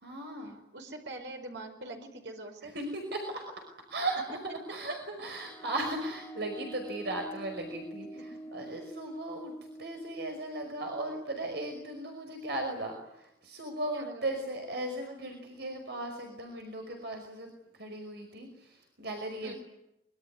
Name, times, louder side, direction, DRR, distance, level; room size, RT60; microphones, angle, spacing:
voice 1, 0.0-0.6 2.6-3.5 3.9-4.4 4.7-19.5, right 1 dB, 65° right, 4 dB, 5.4 m, -37 dB
voice 2, 0.7-2.7 13.9-14.3 19.4-19.5, right 2 dB, 85° right, 4 dB, 5.1 m, -43 dB
sound 1, 5.3-12.8, right 2 dB, 20° left, 3.4 m, -47 dB
25.5 x 23.5 x 9.7 m, 0.83 s
head